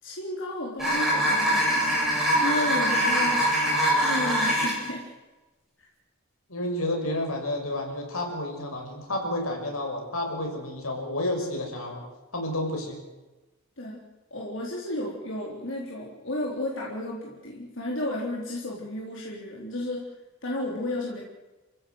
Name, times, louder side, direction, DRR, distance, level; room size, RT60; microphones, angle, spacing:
voice 1, 0.0-2.0 2.4-3.4 4.0-5.1 13.8-14.0 14.3-20.1 20.4-21.2, left 1 dB, 60° left, -3 dB, 3.9 m, -33 dB
sound 1, 0.8-4.9, equal, ahead, 8.0 m, -23 dB
voice 2, 6.5-12.0 12.3-13.0, left 1 dB, 85° left, 2 dB, 6.3 m, -30 dB
28.0 x 15.5 x 8.0 m, 1.1 s
head